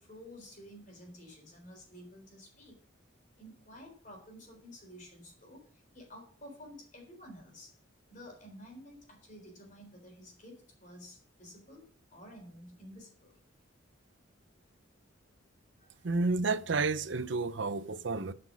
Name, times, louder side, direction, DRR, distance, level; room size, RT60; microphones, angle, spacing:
voice 1, 0.0-2.8 3.4-7.8 8.1-11.9 12.1-13.4 15.8-16.1, equal, 40° left, 3.9 m, -51 dB
voice 2, 16.0-18.3, right 3 dB, 60° right, 0.7 m, -30 dB
12.0 x 5.9 x 6.2 m
head